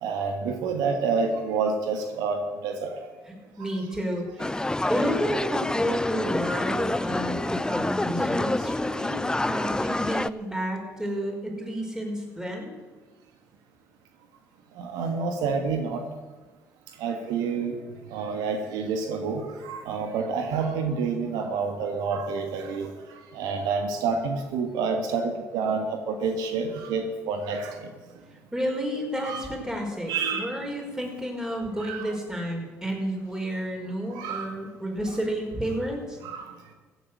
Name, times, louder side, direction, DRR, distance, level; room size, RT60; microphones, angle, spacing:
voice 1, 0.0-3.1 14.8-16.0 17.0-17.8 18.1-22.9 23.3-27.9 29.2-29.5 30.1-30.5 31.8-32.1 34.1-34.5 36.2-36.5, right 5 dB, 80° right, 5 dB, 1.6 m, -28 dB
voice 2, 3.6-4.6 4.9-12.7 28.5-36.2, equal, 10° right, 0 dB, 5.4 m, -31 dB
sound 1, 4.4-10.3, left 2 dB, 10° left, 0.5 m, -27 dB
15.5 x 8.1 x 8.1 m, 1.3 s
hypercardioid pair, 60°, 7 cm